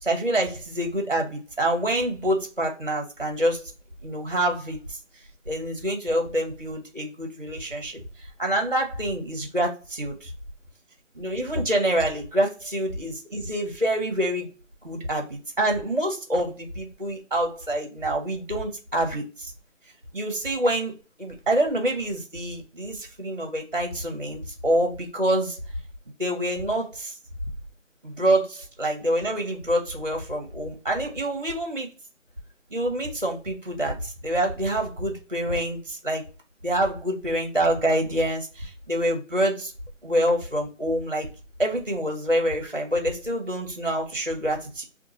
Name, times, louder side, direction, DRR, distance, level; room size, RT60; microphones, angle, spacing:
voice 1, 0.0-3.6 4.0-4.8 5.5-8.0 8.4-10.3 11.2-14.5 14.8-19.5 20.1-20.9 21.2-25.6 26.2-27.1 28.0-31.9 32.7-36.2 36.6-39.7 40.0-41.3 41.6-44.8, right 1 dB, 40° right, 3 dB, 0.7 m, -26 dB
2.8 x 2.3 x 2.8 m, 0.33 s
figure-of-eight pair, 180°, 39 cm